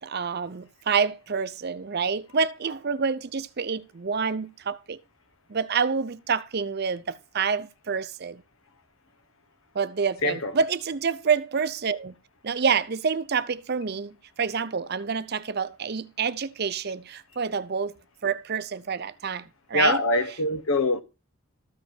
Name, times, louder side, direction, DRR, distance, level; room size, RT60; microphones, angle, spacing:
voice 1, 0.0-5.0 5.5-8.4 9.7-12.1 12.4-18.0 18.2-20.0, right 5 dB, 50° right, 0.6 m, -28 dB
voice 2, 19.7-21.0, left 2 dB, 75° left, 1.3 m, -23 dB
13.5 x 5.1 x 6.1 m
head